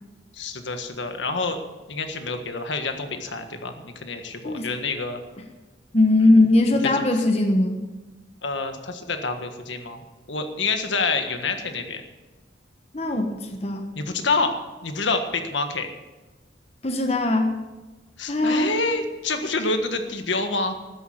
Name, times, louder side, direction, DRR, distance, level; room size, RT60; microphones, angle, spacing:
voice 1, 0.3-1.6 1.9-5.2 6.9-7.2 8.4-12.0 13.9-14.6 14.8-15.9 18.2-20.7, left 3 dB, 75° left, 6 dB, 1.6 m, -27 dB
voice 2, 4.4-4.7 5.9-7.8 12.9-13.9 16.8-17.5 18.2-18.8, left 2 dB, 35° left, 4 dB, 1.2 m, -20 dB
13.0 x 10.0 x 8.0 m, 1.2 s
head